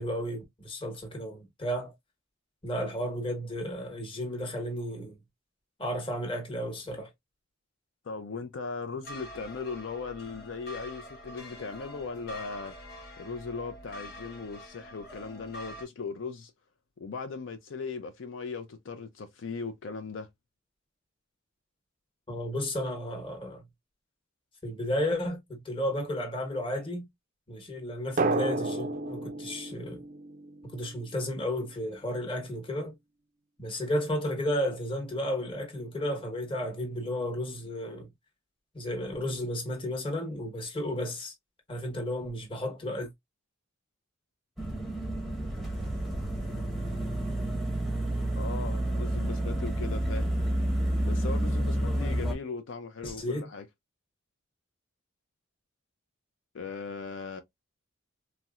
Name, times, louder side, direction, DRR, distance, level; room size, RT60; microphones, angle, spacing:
voice 1, 0.0-1.9 2.6-5.2 5.8-7.1 22.3-23.6 24.6-27.1 27.5-30.0 30.6-32.9 33.6-38.1 38.7-41.3 41.7-43.1 53.0-53.5, equal, 25° left, 1.0 m, -33 dB
voice 2, 8.0-12.8 13.2-16.5 17.0-20.3 48.3-50.3 51.0-53.7 56.5-57.4, left 4 dB, 65° left, 0.4 m, -38 dB
sound 1, 9.0-15.9, equal, 50° left, 1.0 m, -46 dB
Drum, 28.2-30.9, right 2 dB, 40° right, 0.4 m, -31 dB
sound 2, 44.6-52.4, right 1 dB, ahead, 0.7 m, -30 dB
4.1 x 2.0 x 2.3 m
head